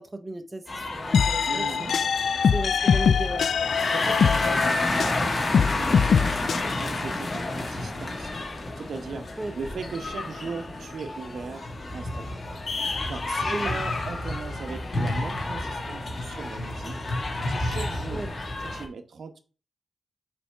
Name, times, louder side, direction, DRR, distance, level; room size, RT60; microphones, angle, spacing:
voice 1, 0.0-1.9 2.5-3.5 9.4-9.5 13.5-13.7 18.1-18.3, right 2 dB, 15° right, 0.6 m, -35 dB
sound 1, 0.7-18.8, left 2 dB, 45° left, 1.7 m, -30 dB
sound 2, 1.1-5.2 5.5-6.6, left 6 dB, 85° left, 0.3 m, -23 dB
voice 2, 1.5-2.0 3.9-8.3 8.8-9.3 9.6-11.7 11.9-12.4 13.1-17.0 17.5-18.3 18.6-19.4, right 5 dB, 75° right, 0.9 m, -39 dB
6.9 x 3.4 x 5.6 m
wide cardioid pair, 170°, 0 cm